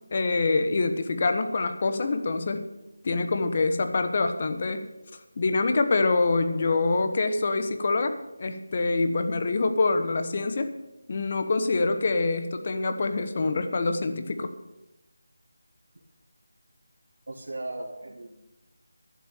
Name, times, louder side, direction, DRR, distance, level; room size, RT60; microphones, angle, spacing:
voice 1, 0.0-2.7 3.0-4.9 5.4-10.7 11.1-14.5, left 3 dB, 40° left, 8 dB, 1.1 m, -25 dB
voice 2, 17.3-18.3, right 2 dB, 70° right, -1 dB, 2.0 m, -36 dB
11.0 x 7.4 x 8.9 m, 0.96 s
figure-of-eight pair, 170°, 0 cm